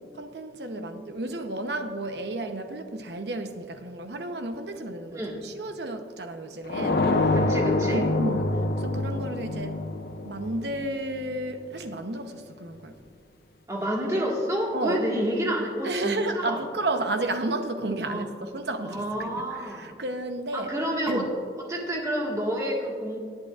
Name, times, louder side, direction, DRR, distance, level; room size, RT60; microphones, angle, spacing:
voice 1, 0.1-7.4 7.9-9.8 10.2-13.0 14.1-14.2 14.7-15.0 15.8-20.7 21.1-21.3, right 2 dB, 75° right, 7 dB, 0.9 m, -32 dB
voice 2, 5.1-5.5 7.3-8.1 13.7-16.6 18.0-18.3 18.9-19.9 20.5-21.3 21.6-23.2, equal, 20° right, -2 dB, 1.6 m, -29 dB
sound 1, 6.7-11.4, left 2 dB, 55° left, 0.5 m, -26 dB
18.5 x 8.9 x 2.5 m, 2.2 s
head